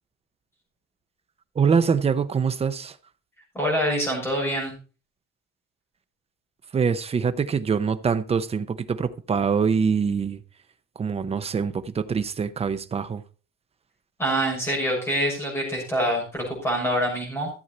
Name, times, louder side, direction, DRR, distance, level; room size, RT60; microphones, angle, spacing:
voice 1, 1.6-2.9 6.7-10.4 11.0-13.2, right 6 dB, 20° right, 0.6 m, -24 dB
voice 2, 3.5-4.7 14.2-17.5, equal, 10° left, 6.2 m, -25 dB
14.0 x 8.0 x 4.3 m
cardioid pair, 175°, 30 cm